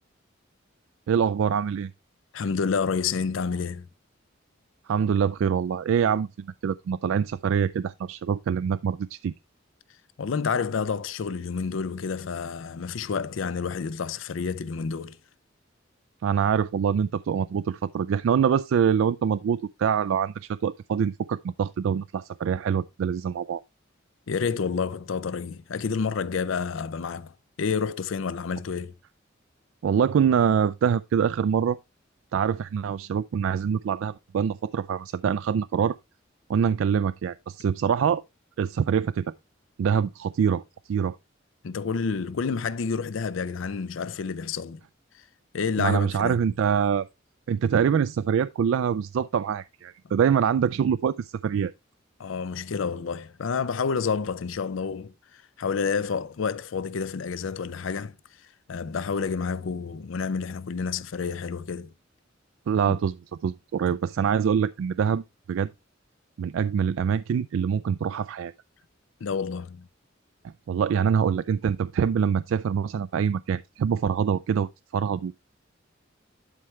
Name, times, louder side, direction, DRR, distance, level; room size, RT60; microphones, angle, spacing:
voice 1, 1.1-1.9 4.9-9.3 16.2-23.6 29.8-31.8 32.3-36.0 36.5-38.2 38.6-39.2 39.8-40.6 40.9-41.2 45.8-47.1 47.5-51.7 62.7-63.2 63.4-65.7 66.4-68.5 70.7-75.3, right 7 dB, 75° right, 0.3 m, -25 dB
voice 2, 2.3-3.9 10.2-15.2 24.3-28.9 41.6-44.8 45.5-46.4 52.2-58.1 58.7-61.9 62.9-63.0 69.2-69.9, left 5 dB, 75° left, 0.5 m, -29 dB
11.0 x 4.5 x 3.1 m
head